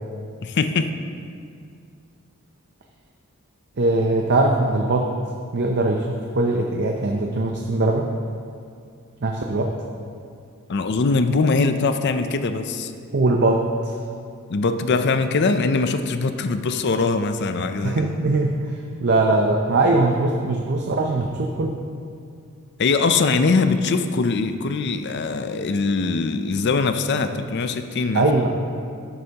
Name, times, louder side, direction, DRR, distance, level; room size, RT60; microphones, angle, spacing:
voice 1, 0.4-0.9 10.7-12.9 14.5-18.1 22.8-28.3, left 4 dB, 50° left, 9 dB, 0.5 m, -22 dB
voice 2, 3.8-5.1 5.5-8.1 9.2-9.7 13.1-14.0 17.8-18.6 19.0-21.8 28.1-28.5, right 2 dB, 50° right, 2 dB, 0.6 m, -21 dB
11.5 x 7.9 x 2.9 m, 2.3 s
head